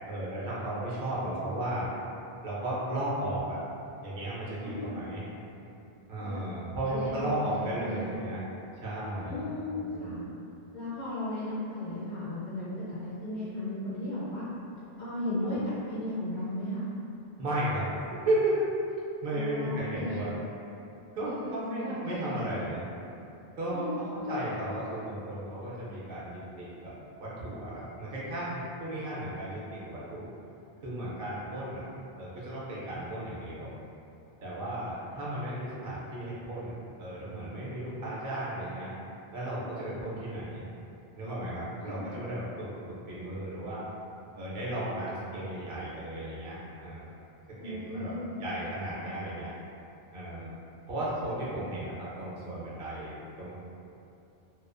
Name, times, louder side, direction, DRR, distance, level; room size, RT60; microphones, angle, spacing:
voice 1, 0.1-1.9 2.4-3.6 4.0-5.2 6.1-8.4 8.8-9.4 9.7-10.3 15.4-15.5 17.4-18.7 19.2-20.3 21.1-22.8 23.6-26.9 27.2-30.2 30.8-31.9 32.2-33.7 34.4-38.9 39.3-40.6 41.2-42.7 43.1-43.8 44.3-47.2 47.6-48.1 48.4-49.5 50.1-50.6 50.9-53.5, right 1 dB, 65° right, -7 dB, 0.7 m, -34 dB
voice 2, 4.6-5.0 6.2-6.5 6.9-8.2 9.2-10.2 10.7-14.5 15.0-16.9 19.3-20.4 21.2-22.6 23.7-24.4 41.8-42.2 47.5-48.5, left 1 dB, 50° left, -11 dB, 0.8 m, -36 dB
2.4 x 2.2 x 2.4 m, 2.7 s
omnidirectional pair, 1.1 m